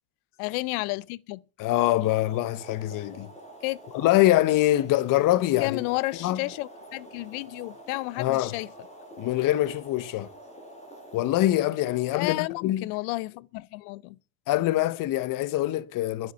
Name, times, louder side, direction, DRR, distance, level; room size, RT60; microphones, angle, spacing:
voice 1, 0.4-1.4 3.6-3.8 5.6-8.7 12.1-14.2, left 22 dB, 80° left, 0.6 m, -31 dB
voice 2, 1.6-3.3 3.9-5.8 6.2-6.4 8.2-8.5 9.2-10.3 11.1-12.9 14.5-16.3, left 15 dB, 50° left, 0.8 m, -24 dB
Boiling, 1.7-12.7, right 1 dB, 15° left, 4.9 m, -47 dB
10.5 x 10.5 x 6.8 m
supercardioid pair, 120°, 43 cm